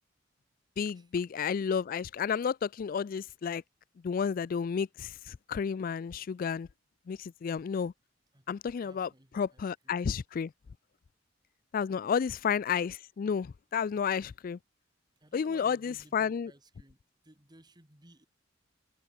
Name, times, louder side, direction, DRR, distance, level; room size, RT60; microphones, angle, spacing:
voice 1, 0.8-3.6 4.0-6.7 7.1-7.9 8.5-9.1 9.3-10.5 11.7-14.6 15.3-16.5, left 6 dB, 45° left, 0.3 m, -31 dB
voice 2, 8.8-10.1 12.0-12.3 15.2-17.0 17.2-18.3, right 1 dB, 20° right, 3.3 m, -59 dB
head